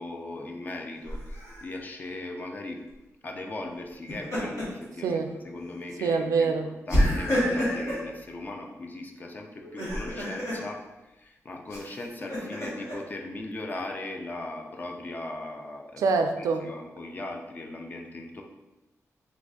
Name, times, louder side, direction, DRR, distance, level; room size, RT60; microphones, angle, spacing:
voice 1, 0.0-2.8 3.2-5.2 5.4-6.5 6.9-10.8 11.1-16.0 16.4-18.4, left 2 dB, 30° left, 2 dB, 0.4 m, -38 dB
Laughter, 1.1-1.6 3.9-4.8 5.3-5.4 6.9-8.1 9.6-10.6 11.7-12.9, equal, 70° left, 1.4 m, -28 dB
voice 2, 6.0-6.7 16.0-16.6, right 4 dB, 85° right, 5 dB, 0.3 m, -25 dB
3.1 x 2.5 x 3.5 m, 1.0 s
wide cardioid pair, 140°, 6 cm